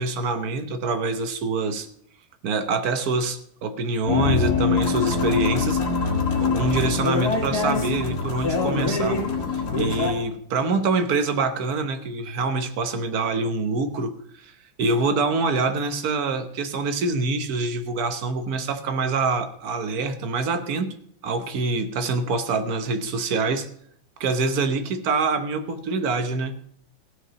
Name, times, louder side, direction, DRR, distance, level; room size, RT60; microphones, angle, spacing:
voice 1, 0.0-1.9 2.4-5.8 6.4-9.2 9.7-14.1 14.4-14.5 14.8-20.9 21.2-23.7 24.2-26.5, right 3 dB, 55° right, 9 dB, 1.4 m, -25 dB
sound 1, 4.1-10.1, left 4 dB, 55° left, 2.4 m, -23 dB
15.5 x 5.9 x 6.9 m, 0.67 s
omnidirectional pair, 2.1 m